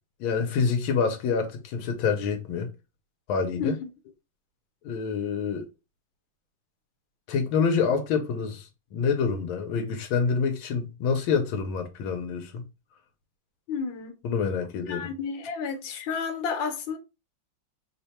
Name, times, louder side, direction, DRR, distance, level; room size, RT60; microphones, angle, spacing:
voice 1, 0.2-2.7 3.3-3.8 4.8-5.7 7.3-12.6 14.2-15.1, left 5 dB, 90° left, 1.5 m, -27 dB
voice 2, 13.7-14.1 14.9-17.0, left 5 dB, 70° left, 1.5 m, -31 dB
3.4 x 2.2 x 4.1 m
omnidirectional pair, 2.2 m